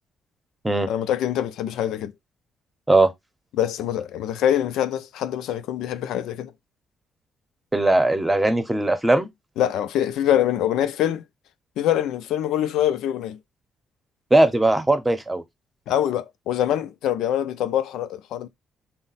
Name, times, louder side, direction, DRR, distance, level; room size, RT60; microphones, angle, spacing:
voice 1, 0.9-2.1 3.5-6.5 9.6-11.2 11.8-13.4 15.9-18.5, left 11 dB, 85° left, 0.4 m, -24 dB
voice 2, 7.7-9.3 14.3-15.4, right 2 dB, 15° right, 0.8 m, -19 dB
3.9 x 2.1 x 4.0 m
cardioid pair, 90°, 0 cm